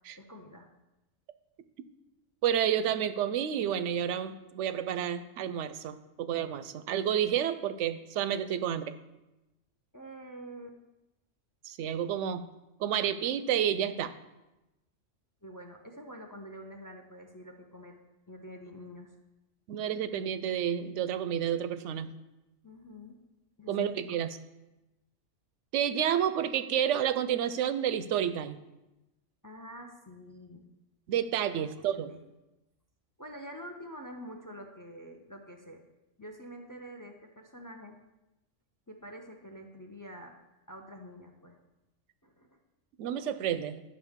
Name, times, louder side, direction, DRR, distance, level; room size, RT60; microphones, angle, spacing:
voice 1, 0.1-0.7 9.9-10.8 15.4-18.0 18.3-19.1 22.6-23.2 23.6-24.2 29.4-30.6 31.6-32.2 33.2-35.8 36.2-38.0 38.9-40.4 40.7-41.6 42.2-42.5, equal, 25° left, 3 dB, 0.5 m, -47 dB
voice 2, 2.4-8.9 11.6-12.4 12.8-14.2 19.7-22.1 23.7-24.4 25.7-28.6 31.1-32.1 43.0-43.8, right 9 dB, 70° right, 13 dB, 0.8 m, -30 dB
11.0 x 6.2 x 3.6 m, 0.99 s
omnidirectional pair, 1.3 m